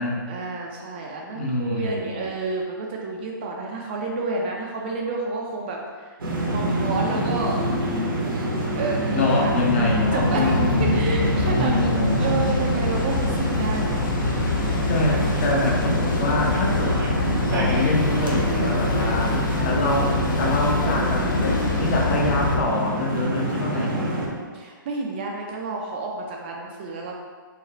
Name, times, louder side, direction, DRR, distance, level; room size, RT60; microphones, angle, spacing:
voice 1, 0.3-6.1 6.5-7.6 8.8-9.0 9.3-9.5 10.1-14.0 15.1-15.2 19.2-19.6 23.9-27.2, right 3 dB, 30° right, 0 dB, 0.5 m, -30 dB
voice 2, 1.3-2.2 9.1-10.8 11.4-12.3 14.9-17.0 17.5-19.4 19.6-23.9, left 2 dB, 35° left, -2 dB, 0.8 m, -25 dB
sound 1, 6.2-24.3, right 1 dB, 90° right, 1.2 m, -25 dB
sound 2, 9.4-22.6, left 3 dB, 70° left, 0.8 m, -26 dB
4.7 x 2.1 x 4.3 m, 1.5 s
hypercardioid pair, 165°, 11 cm